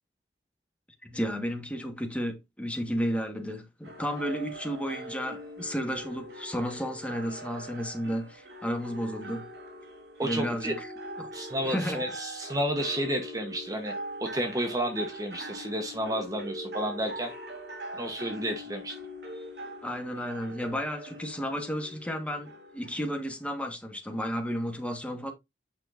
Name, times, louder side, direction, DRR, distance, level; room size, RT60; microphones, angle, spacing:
voice 1, 1.0-9.4 10.2-10.9 11.2-11.3 11.6-12.0 19.8-25.3, equal, 5° left, 1.6 m, -33 dB
sound 1, 3.8-23.4, right 1 dB, 65° right, 3.1 m, -42 dB
voice 2, 10.2-10.7 11.3-13.9 14.2-17.3 17.9-18.9, equal, 20° right, 1.2 m, -31 dB
9.0 x 5.9 x 2.7 m
head